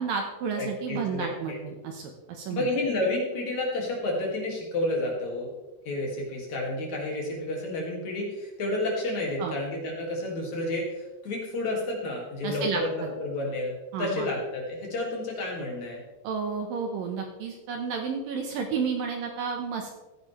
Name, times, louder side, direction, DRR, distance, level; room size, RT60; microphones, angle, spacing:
voice 1, 0.0-2.7 9.4-9.6 12.4-13.1 13.9-14.3 16.2-19.9, right 5 dB, 70° right, 3 dB, 2.5 m, -31 dB
voice 2, 0.6-1.6 2.5-5.5 5.8-16.0, left 1 dB, 50° left, -1 dB, 3.3 m, -30 dB
15.5 x 10.0 x 3.3 m, 1.1 s
omnidirectional pair, 4.8 m